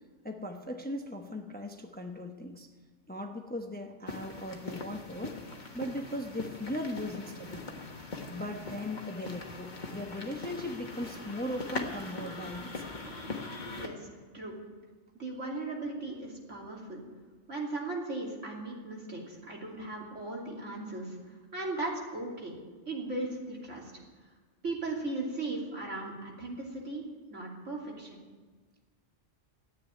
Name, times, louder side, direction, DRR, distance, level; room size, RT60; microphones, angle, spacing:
voice 1, 0.2-2.7 3.1-5.4 5.7-7.8 8.3-12.8, left 1 dB, 10° left, 3 dB, 0.9 m, -38 dB
sound 1, 4.1-13.9, left 3 dB, 35° left, 1.5 m, -41 dB
voice 2, 13.8-14.6 15.1-17.0 17.5-22.6 22.9-23.9 24.6-28.2, right 2 dB, 70° right, -2 dB, 3.2 m, -37 dB
13.5 x 9.2 x 9.5 m, 1.4 s
omnidirectional pair, 1.3 m